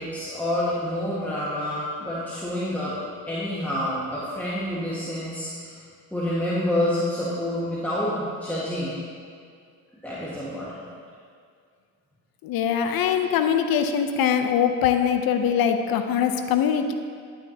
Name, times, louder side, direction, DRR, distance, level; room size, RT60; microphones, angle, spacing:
voice 1, 0.0-3.0 3.3-5.5 6.1-9.0 10.0-10.7, left 1 dB, 5° left, -9 dB, 1.6 m, -28 dB
voice 2, 12.4-16.9, left 8 dB, 65° left, 7 dB, 0.7 m, -22 dB
11.0 x 5.8 x 2.9 m, 2.2 s
supercardioid pair, 60°, 38 cm